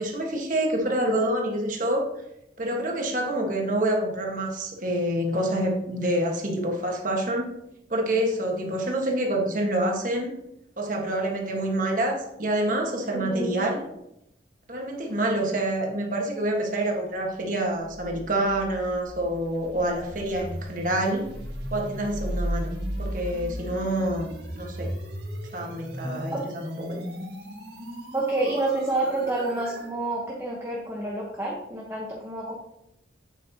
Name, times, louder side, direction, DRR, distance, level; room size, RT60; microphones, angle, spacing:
voice 1, 0.0-2.1 2.6-7.5 7.9-10.3 10.8-13.8 14.7-21.3 21.7-22.7 23.0-24.9 25.5-27.0, right 1 dB, 45° right, 1 dB, 1.5 m, -27 dB
voice 2, 13.1-13.6 26.0-26.4 28.1-32.5, right 2 dB, 15° right, -3 dB, 1.1 m, -29 dB
sound 1, 17.8-29.9, equal, 65° right, 1.9 m, -36 dB
8.3 x 7.8 x 2.9 m, 0.83 s
head